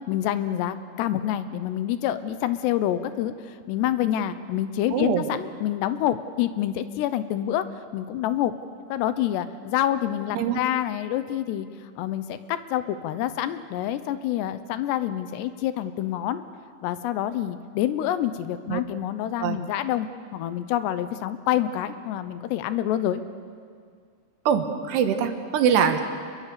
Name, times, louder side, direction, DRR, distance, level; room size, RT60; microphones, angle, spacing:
voice 1, 0.1-7.6 7.9-8.5 8.9-11.7 12.0-16.4 16.8-20.1 20.3-23.2, left 12 dB, 75° left, 12 dB, 2.7 m, -27 dB
voice 2, 4.9-5.2 10.3-10.6 18.7-18.8 19.4-19.6 24.5-26.0, right 8 dB, 70° right, 7 dB, 3.1 m, -23 dB
27.5 x 22.0 x 6.8 m, 2.1 s
omnidirectional pair, 5.4 m